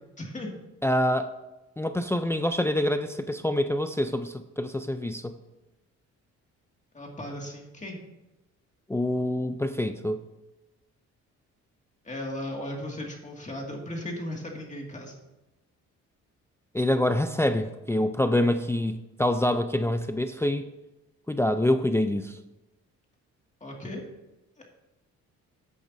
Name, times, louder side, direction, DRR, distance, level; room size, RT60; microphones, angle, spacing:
voice 1, 0.2-0.5 6.9-8.0 12.0-15.1 23.6-24.1 24.6-24.7, left 1 dB, 25° left, 0 dB, 2.2 m, -36 dB
voice 2, 0.8-1.3 1.8-5.4 8.9-10.2 16.7-20.7 21.3-22.4, left 1 dB, 10° left, 8 dB, 0.5 m, -26 dB
13.5 x 8.4 x 2.7 m, 1.0 s
cardioid pair, 90°, 30 cm